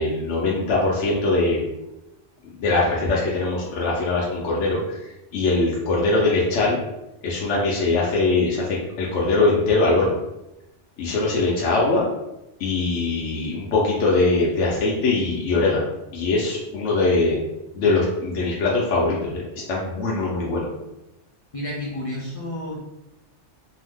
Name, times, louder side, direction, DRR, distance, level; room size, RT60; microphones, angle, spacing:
voice 1, 0.0-1.6 2.6-4.8 5.3-6.8 7.2-10.2 11.0-12.1 12.6-17.4 17.7-19.4 19.7-20.7, left 3 dB, 75° left, -4 dB, 0.9 m, -22 dB
voice 2, 21.5-22.8, left 1 dB, 50° left, -5 dB, 0.4 m, -30 dB
2.6 x 2.0 x 3.4 m, 0.92 s
omnidirectional pair, 1.2 m